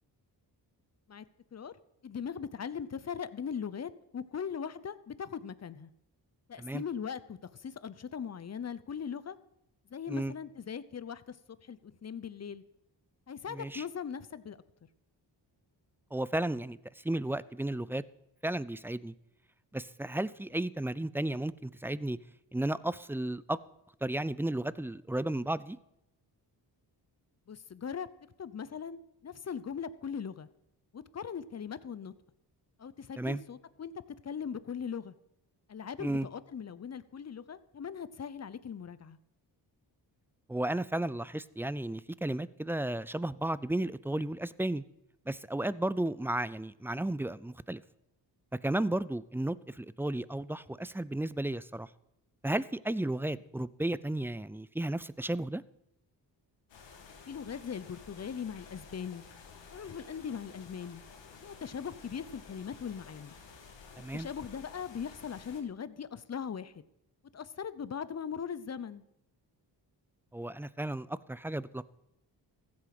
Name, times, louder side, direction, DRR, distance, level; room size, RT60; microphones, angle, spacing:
voice 1, 2.0-5.9 6.5-9.4 9.9-11.4 11.6-12.6 13.3-14.6 27.5-28.1 28.4-30.5 30.9-32.1 32.8-35.1 35.7-39.2 57.3-59.2 59.7-61.0 61.4-63.3 64.1-66.8 67.3-69.0, left 7 dB, 35° left, 16 dB, 0.8 m, -40 dB
voice 2, 13.5-13.8 16.1-16.8 17.0-18.0 18.4-19.1 19.7-22.2 22.5-23.6 24.0-25.8 33.2-33.4 36.0-36.3 40.5-44.8 45.3-47.8 48.6-51.9 52.4-55.6 64.0-64.3 70.3-71.8, right 1 dB, 5° right, 18 dB, 0.4 m, -33 dB
sound 1, 56.7-65.6, left 5 dB, 80° left, 2.1 m, -52 dB
15.0 x 8.6 x 5.9 m, 0.82 s
cardioid pair, 75°, 43 cm